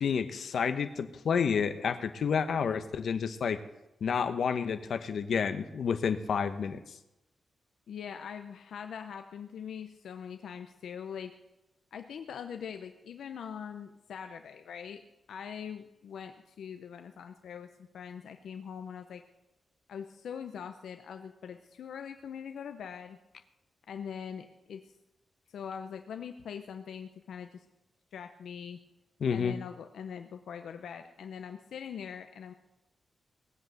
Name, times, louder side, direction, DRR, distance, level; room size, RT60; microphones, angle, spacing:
voice 1, 0.0-3.6 4.0-6.8 29.2-29.6, left 6 dB, 70° left, 10 dB, 1.1 m, -30 dB
voice 2, 7.9-11.3 11.9-15.0 15.3-19.2 19.9-23.2 23.9-24.9 25.5-27.7 28.1-28.8 29.3-32.5, left 7 dB, 85° left, 7 dB, 0.8 m, -42 dB
18.5 x 8.2 x 8.0 m, 0.93 s
wide cardioid pair, 125°, 0 cm